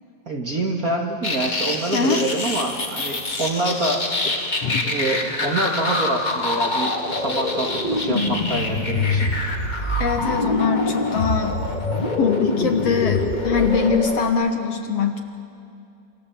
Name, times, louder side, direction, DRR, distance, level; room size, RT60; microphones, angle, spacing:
voice 1, 0.3-4.5 4.8-9.3, right 2 dB, 30° right, 0 dB, 2.3 m, -26 dB
sound 1, 1.2-14.3, left 2 dB, 20° left, 1.2 m, -24 dB
voice 2, 1.9-2.3 4.6-4.9 10.0-11.6 12.2-15.2, left 6 dB, 60° left, 5 dB, 2.2 m, -22 dB
sound 2, 2.5-11.1, right 1 dB, 80° right, 8.2 m, -48 dB
28.0 x 27.5 x 7.6 m, 2.6 s
omnidirectional pair, 3.6 m